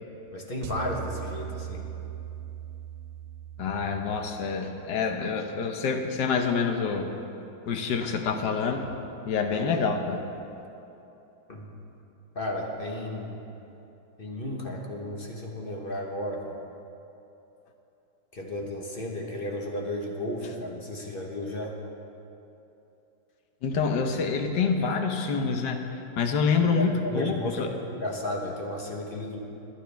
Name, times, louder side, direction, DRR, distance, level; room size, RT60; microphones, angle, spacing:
voice 1, 0.3-1.9 11.5-11.7 12.3-13.4 14.2-16.6 18.3-21.7 26.6-29.4, left 1 dB, 35° left, 0 dB, 1.2 m, -33 dB
sound 1, 0.6-5.0, right 10 dB, 90° right, 1.3 m, -39 dB
voice 2, 3.6-7.1 7.7-8.9 9.3-10.2 23.6-27.7, left 5 dB, 70° left, 5 dB, 1.5 m, -27 dB
21.5 x 9.8 x 3.4 m, 2.9 s
omnidirectional pair, 2.0 m